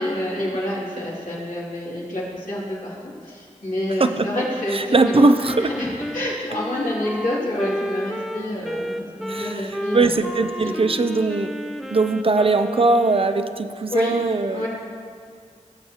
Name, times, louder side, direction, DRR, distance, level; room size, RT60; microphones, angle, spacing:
voice 1, 0.0-2.9 3.2-10.3 10.6-10.9 13.9-14.1 14.4-14.7, left 1 dB, 80° left, -7 dB, 2.7 m, -28 dB
voice 2, 4.7-5.7 9.3-11.5 11.9-14.6, right 3 dB, 45° right, 9 dB, 0.5 m, -20 dB
Wind instrument woodwind instrument, 4.9-13.6, equal, ahead, 0.6 m, -32 dB
17.5 x 7.2 x 2.9 m, 2.2 s
cardioid pair, 40°, 13 cm